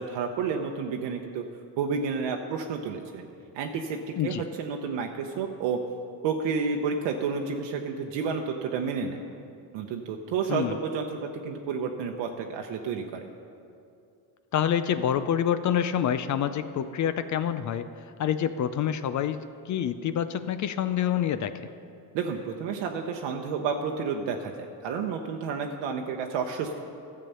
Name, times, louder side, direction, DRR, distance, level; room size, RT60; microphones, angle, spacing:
voice 1, 0.0-1.4 1.8-3.3 3.5-5.8 6.2-9.2 9.7-13.3 22.1-26.8, right 5 dB, 80° right, 2 dB, 0.9 m, -30 dB
voice 2, 14.5-17.9 18.2-21.7, left 9 dB, 45° left, 12 dB, 0.5 m, -27 dB
12.5 x 7.5 x 5.6 m, 2.5 s
cardioid pair, 105°, 43 cm